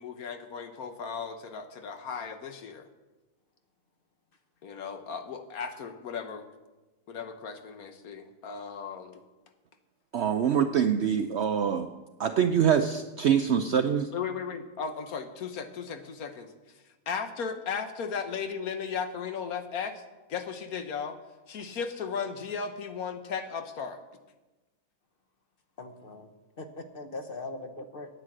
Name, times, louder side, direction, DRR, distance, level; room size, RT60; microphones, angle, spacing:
voice 1, 0.0-2.9 4.6-6.4 7.1-9.2 14.1-16.5 17.1-20.0 20.3-21.2 21.5-24.0, left 6 dB, 70° left, 8 dB, 1.4 m, -36 dB
voice 2, 10.1-11.9 12.2-14.1, right 8 dB, 65° right, 8 dB, 0.6 m, -24 dB
voice 3, 25.8-26.3 26.6-28.1, left 2 dB, 40° left, 7 dB, 1.0 m, -40 dB
9.7 x 9.1 x 7.7 m, 1.1 s
omnidirectional pair, 1.7 m